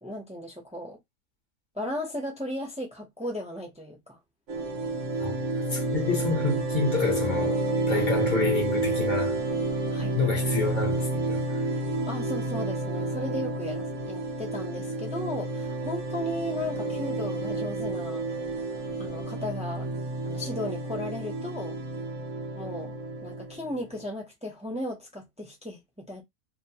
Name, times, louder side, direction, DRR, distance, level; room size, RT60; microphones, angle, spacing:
voice 1, 0.0-1.0 1.7-4.2 9.9-10.2 12.1-18.6 19.0-19.9 20.2-21.8 22.5-22.9 23.2-26.2, left 1 dB, 10° right, 0.4 m, -36 dB
sound 1, 4.5-24.0, right 2 dB, 60° right, 1.0 m, -30 dB
voice 2, 5.7-7.6 7.9-9.4 10.2-11.4 20.3-20.4, left 3 dB, 40° left, 0.7 m, -28 dB
2.8 x 2.0 x 2.8 m
omnidirectional pair, 1.6 m